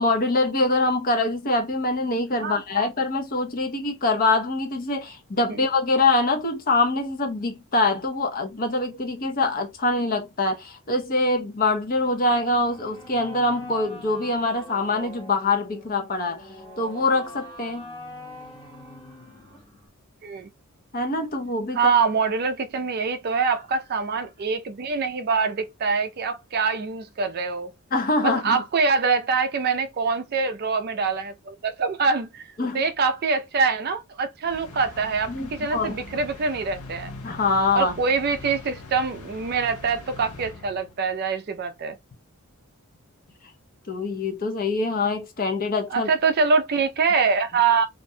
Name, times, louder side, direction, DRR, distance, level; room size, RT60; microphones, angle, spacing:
voice 1, 0.0-16.5 16.8-17.9 20.9-21.9 27.9-28.6 32.6-32.8 35.3-35.9 37.2-37.9 43.9-46.1, left 2 dB, 40° left, 0.6 m, -24 dB
voice 2, 2.4-2.9 5.5-5.6 20.2-20.5 21.7-27.7 28.2-37.1 37.7-42.0 45.9-47.9, right 5 dB, 45° right, 0.4 m, -24 dB
sound 1, 11.9-19.9, left 1 dB, 20° left, 0.9 m, -43 dB
sound 2, 34.5-41.2, left 3 dB, 80° left, 0.7 m, -42 dB
2.4 x 2.1 x 2.6 m
head